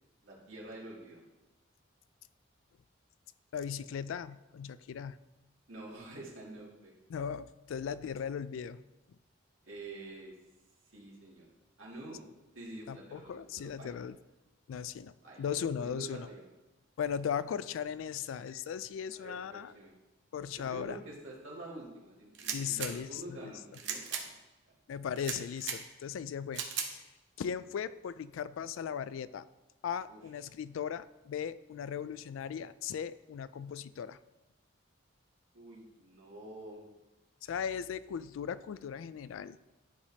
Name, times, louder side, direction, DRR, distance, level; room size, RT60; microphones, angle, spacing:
voice 1, 0.2-1.2 5.7-6.9 9.6-10.4 10.9-11.5 11.8-12.2 12.5-13.9 15.2-15.5 15.8-16.4 19.1-19.9 20.6-24.3 30.1-30.2 35.5-36.8, right 2 dB, 80° right, -4 dB, 2.1 m, -47 dB
voice 2, 3.5-5.2 7.1-8.8 12.9-14.2 14.7-16.3 17.0-19.7 20.3-21.0 22.5-23.5 24.9-26.6 26.9-27.0 27.4-29.5 29.8-34.2 37.4-39.6, left 7 dB, 80° left, 16 dB, 0.3 m, -38 dB
sound 1, 22.3-22.9 23.7-24.2 25.2-25.8 26.5-26.9, right 7 dB, 60° right, 0.8 m, -37 dB
11.5 x 4.9 x 2.8 m, 1.0 s
head